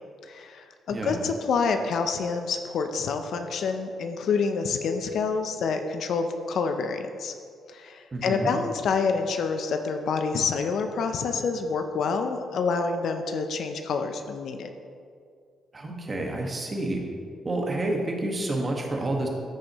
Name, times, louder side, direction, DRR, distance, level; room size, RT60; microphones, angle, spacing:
voice 1, 0.2-7.3 7.7-14.7, left 5 dB, 70° left, 6 dB, 0.6 m, -27 dB
voice 2, 8.1-8.5 15.7-17.0 17.4-19.3, right 2 dB, 30° right, 1 dB, 1.6 m, -29 dB
14.0 x 6.3 x 3.0 m, 2.2 s
cardioid pair, 90°, 0 cm